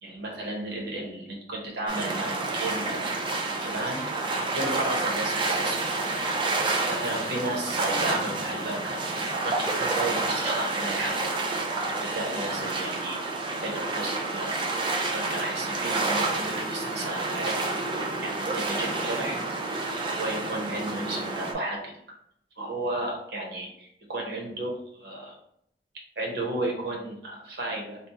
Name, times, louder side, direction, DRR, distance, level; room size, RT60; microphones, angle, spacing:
voice 1, 0.0-3.0 3.5-4.1 4.5-5.8 6.9-8.9 9.4-11.4 12.0-13.2 13.6-14.5 15.1-17.6 18.2-19.4 20.2-21.9 22.6-25.3 26.2-28.0, right 1 dB, 65° right, -1 dB, 0.8 m, -33 dB
sound 1, 1.9-21.5, right 3 dB, 30° right, 0.4 m, -29 dB
2.8 x 2.1 x 3.6 m, 0.74 s
head